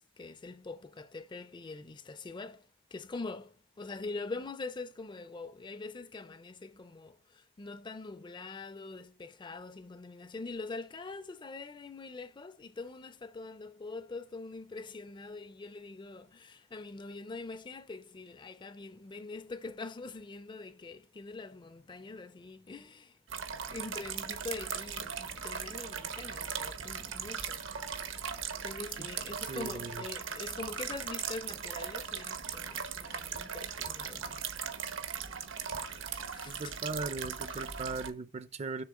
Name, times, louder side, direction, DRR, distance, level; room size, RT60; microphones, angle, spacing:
voice 1, 0.0-23.2 23.7-27.7 28.6-34.4 35.7-36.8 37.5-37.6, left 3 dB, 25° left, 0.4 m, -44 dB
sound 1, 23.3-38.1, right 7 dB, 75° right, 1.0 m, -39 dB
voice 2, 29.5-29.9 36.5-38.8, right 3 dB, 35° right, 0.5 m, -38 dB
7.0 x 3.6 x 6.3 m
head